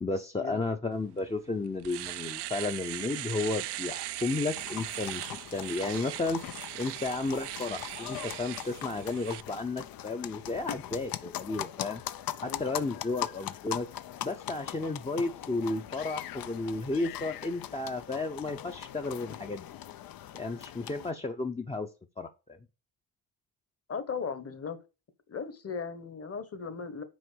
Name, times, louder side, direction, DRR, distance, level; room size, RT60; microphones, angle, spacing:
voice 1, 0.0-5.2 5.5-6.4 6.8-12.0 12.4-13.9 14.2-19.7 20.3-21.9 22.2-22.6, left 3 dB, 15° left, 0.6 m, -33 dB
Domestic sounds home sounds, 1.2-1.3 1.7-9.4, right 15 dB, 85° right, 0.5 m, -39 dB
sound 1, 4.6-21.1, left 12 dB, 60° left, 0.6 m, -41 dB
voice 2, 12.4-13.0 23.9-24.8 25.3-27.0, left 5 dB, 35° left, 1.2 m, -37 dB
6.3 x 4.5 x 6.3 m
cardioid pair, 80°, 39 cm